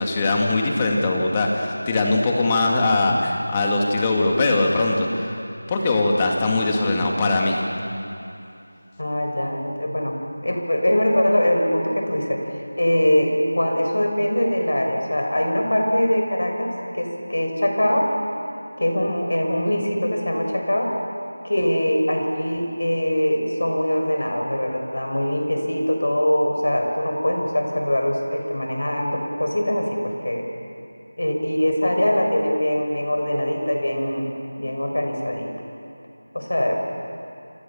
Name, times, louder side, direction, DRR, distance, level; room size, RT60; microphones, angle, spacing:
voice 1, 0.0-5.4 5.7-7.6, left 2 dB, 15° left, 0 dB, 2.3 m, -21 dB
voice 2, 9.0-18.1 18.8-20.9 21.4-30.5 31.2-35.5 36.3-36.8, left 1 dB, 65° left, 2 dB, 6.1 m, -22 dB
29.0 x 28.0 x 7.3 m, 2.7 s
figure-of-eight pair, 170°, 0 cm